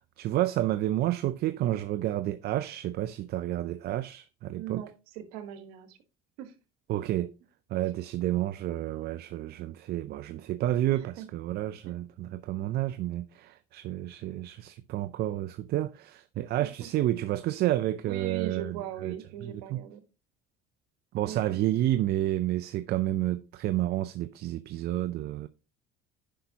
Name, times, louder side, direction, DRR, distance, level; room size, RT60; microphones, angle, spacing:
voice 1, 0.0-4.8 6.9-7.3 7.7-19.8 21.1-25.5, right 14 dB, 55° right, 0.5 m, -30 dB
voice 2, 4.5-6.0 6.4-6.5 10.9-11.3 11.9-12.0 16.4-16.5 16.8-16.9 18.1-20.0 21.2-21.6, right 10 dB, 90° right, 1.4 m, -40 dB
10.0 x 5.6 x 2.8 m
supercardioid pair, 100°, 19 cm